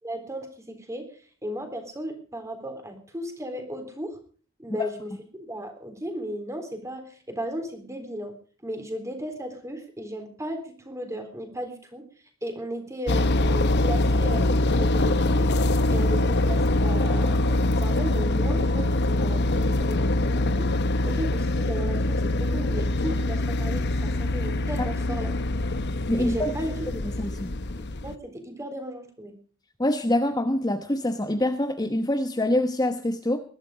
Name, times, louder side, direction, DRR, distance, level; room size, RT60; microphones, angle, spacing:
voice 1, 0.0-4.2 4.6-8.4 8.6-12.1 12.4-15.5 15.9-20.7 21.0-25.4 26.1-27.3 27.8-29.3, equal, 15° right, 6 dB, 3.7 m, -35 dB
sound 1, 13.1-28.1, left 2 dB, 55° left, 0.9 m, -24 dB
voice 2, 26.1-26.5 27.2-27.5 29.8-33.4, left 1 dB, 20° left, 7 dB, 1.0 m, -25 dB
20.5 x 12.0 x 5.0 m, 0.42 s
head